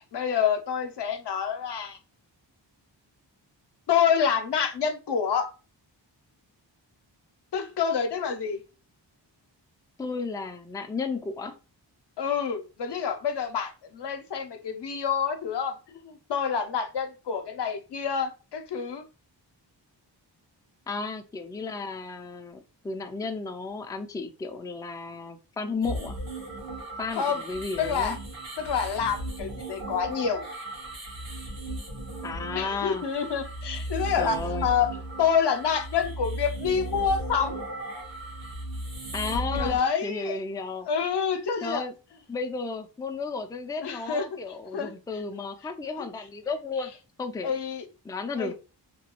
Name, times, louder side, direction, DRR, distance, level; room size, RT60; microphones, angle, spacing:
voice 1, 0.1-2.0 3.9-5.5 7.5-8.6 12.2-19.0 27.2-27.4 27.8-28.2 28.6-30.4 32.5-34.9 35.2-37.6 39.5-40.4 40.9-41.8 43.8-44.3 44.7-44.9 46.0-46.1 47.4-47.9 48.4-48.5, left 7 dB, 65° left, 0.7 m, -27 dB
voice 2, 10.0-11.6 20.9-26.2 27.0-28.2 32.2-33.1 34.2-34.7 39.1-40.9 41.6-41.9 42.3-46.9 47.2-47.6 48.0-48.5, left 4 dB, 10° left, 0.3 m, -33 dB
sound 1, 25.8-39.8, right 1 dB, 85° right, 1.3 m, -36 dB
3.0 x 2.3 x 2.9 m
cardioid pair, 65°, 45 cm